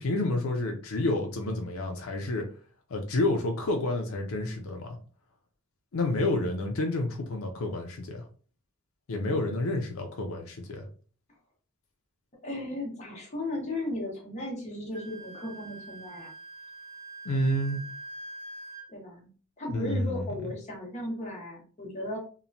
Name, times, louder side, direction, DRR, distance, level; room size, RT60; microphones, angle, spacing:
voice 1, 0.0-2.5 2.9-5.0 5.9-8.2 9.1-10.8 17.3-17.8 19.7-20.3, left 1 dB, 75° left, 2 dB, 0.5 m, -29 dB
voice 2, 12.4-16.3 18.9-19.3 19.6-22.2, left 1 dB, 30° left, -2 dB, 0.9 m, -36 dB
Wind instrument woodwind instrument, 14.9-18.9, right 2 dB, 35° right, 1.0 m, -44 dB
2.9 x 2.1 x 2.6 m, 0.41 s
head